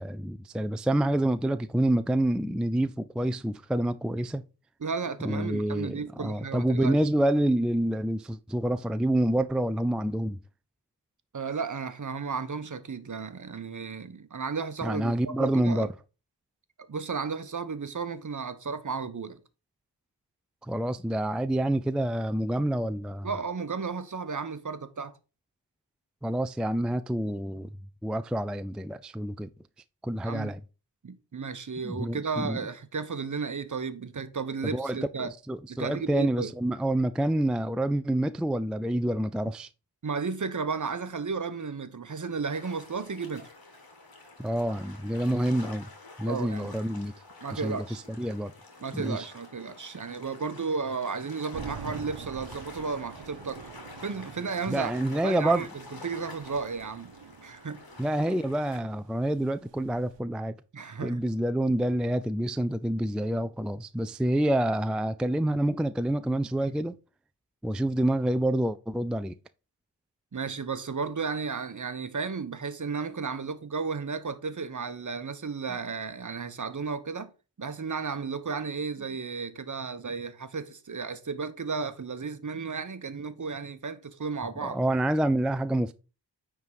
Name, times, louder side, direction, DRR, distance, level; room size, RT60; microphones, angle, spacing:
voice 1, 0.0-4.4 5.2-10.4 14.8-15.9 20.6-23.3 26.2-27.7 28.0-29.5 30.0-30.6 31.8-32.6 34.6-39.7 44.4-45.9 46.2-47.1 47.5-48.5 48.9-49.3 54.7-55.7 58.0-60.6 61.0-67.0 67.6-69.4 84.6-85.9, right 1 dB, ahead, 0.4 m, -27 dB
voice 2, 4.8-7.0 11.3-15.9 16.9-19.4 23.2-25.1 30.3-30.5 31.0-35.3 35.8-36.5 40.0-43.5 46.3-46.7 47.4-48.0 48.8-53.6 54.0-55.7 56.0-57.1 57.4-57.8 60.7-61.2 70.3-77.3 77.6-84.8, right 5 dB, 45° right, 1.0 m, -34 dB
sound 1, 42.5-58.8, left 2 dB, 55° left, 2.3 m, -49 dB
sound 2, 51.5-60.2, right 6 dB, 90° right, 1.0 m, -46 dB
9.4 x 3.7 x 4.8 m
cardioid pair, 50°, 43 cm